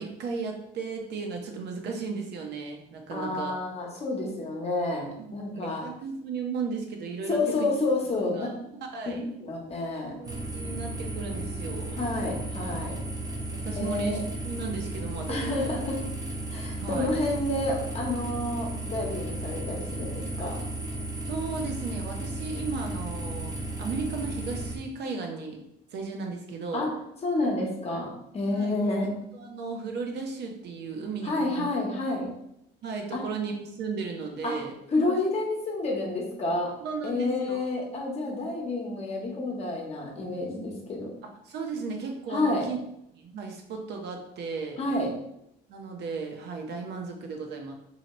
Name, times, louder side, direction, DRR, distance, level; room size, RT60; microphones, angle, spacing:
voice 1, 0.0-3.5 5.2-7.7 8.2-9.2 10.2-12.0 13.5-14.2 14.4-15.6 16.8-17.1 21.3-25.6 25.9-26.9 28.5-28.9 29.3-31.7 32.8-34.7 36.8-37.6 41.4-42.8 43.1-44.8 45.7-47.7, right 4 dB, 65° right, 3 dB, 0.7 m, -35 dB
voice 2, 3.1-5.9 7.3-8.5 9.1-10.2 12.0-13.0 13.7-14.2 15.3-16.0 16.5-20.6 26.7-26.9 27.2-29.1 31.2-32.3 33.1-33.2 34.4-34.6 34.9-36.7 37.0-41.1 42.3-42.7 44.8-45.1, left 2 dB, 35° left, -1 dB, 0.9 m, -29 dB
sound 1, 10.2-24.8, right 2 dB, 20° right, 0.7 m, -34 dB
2.8 x 2.7 x 4.1 m, 0.80 s
cardioid pair, 155°, 19 cm